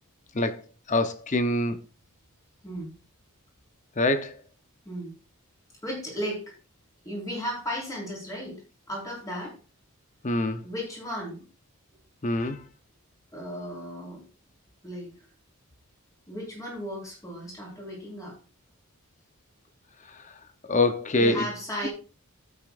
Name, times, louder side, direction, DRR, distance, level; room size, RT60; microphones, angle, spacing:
voice 1, 0.9-1.8 4.0-4.3 10.2-10.6 12.2-12.6 20.7-21.5, left 2 dB, 35° left, 0.8 m, -24 dB
voice 2, 5.8-6.5 7.0-8.6 8.9-9.5 10.6-11.4 13.3-14.2 14.8-15.1 16.3-18.3 21.2-21.9, equal, 15° left, 4.6 m, -35 dB
14.0 x 8.5 x 2.5 m
head